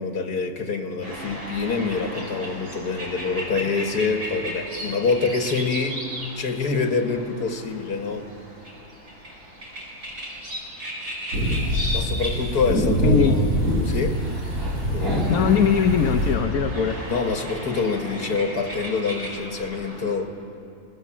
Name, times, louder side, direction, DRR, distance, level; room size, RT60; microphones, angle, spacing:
voice 1, 0.0-6.0 6.3-8.3 11.9-13.6 13.8-14.2 14.9-15.3 17.0-20.3, left 4 dB, 85° left, 5 dB, 2.2 m, -26 dB
sound 1, 1.0-20.1, equal, 75° right, 5.3 m, -36 dB
sound 2, 11.3-16.3, equal, 90° right, 4.3 m, -24 dB
voice 2, 13.0-13.4 15.3-17.0, left 6 dB, 65° left, 4 dB, 1.4 m, -20 dB
29.5 x 20.0 x 7.4 m, 2.6 s
omnidirectional pair, 1.6 m